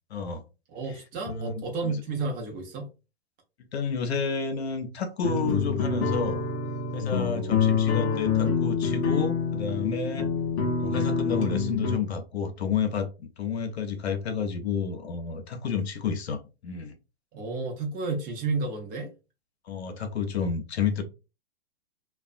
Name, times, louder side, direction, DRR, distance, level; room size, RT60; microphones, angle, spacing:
voice 1, 0.1-0.4 0.9-1.0 1.2-2.0 3.7-6.4 6.9-10.3 10.8-17.0 19.6-21.0, left 6 dB, 80° left, 0.7 m, -30 dB
voice 2, 0.7-2.9 17.3-19.1, right 3 dB, 25° right, 0.7 m, -31 dB
sound 1, 5.2-11.9, left 5 dB, 30° left, 0.7 m, -26 dB
2.4 x 2.2 x 2.4 m
hypercardioid pair, 120°, 32 cm